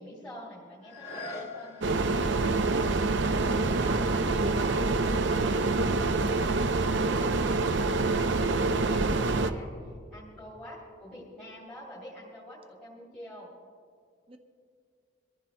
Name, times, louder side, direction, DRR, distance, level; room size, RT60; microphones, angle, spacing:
voice 1, 0.0-2.0 6.2-13.5, equal, 10° left, -9 dB, 2.8 m, -47 dB
sound 1, 0.8-6.5 7.0-7.1, left 2 dB, 30° left, 2.4 m, -47 dB
sound 2, 1.8-9.5, right 3 dB, 65° right, 0.6 m, -26 dB
voice 2, 3.0-4.8 14.3-14.4, right 2 dB, 25° right, 3 dB, 1.0 m, -40 dB
24.5 x 14.5 x 2.2 m, 2.2 s
head